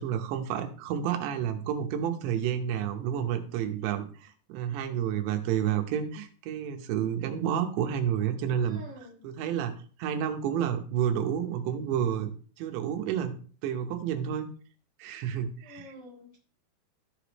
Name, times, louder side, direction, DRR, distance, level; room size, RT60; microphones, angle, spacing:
voice 1, 0.0-8.8 9.2-12.3 12.6-13.4 13.6-14.5 15.0-16.0, right 9 dB, 90° right, 6 dB, 3.2 m, -30 dB
voice 2, 8.7-9.2 15.6-16.4, left 1 dB, 40° left, -5 dB, 1.7 m, -47 dB
14.0 x 5.1 x 3.0 m, 0.41 s
omnidirectional pair, 4.9 m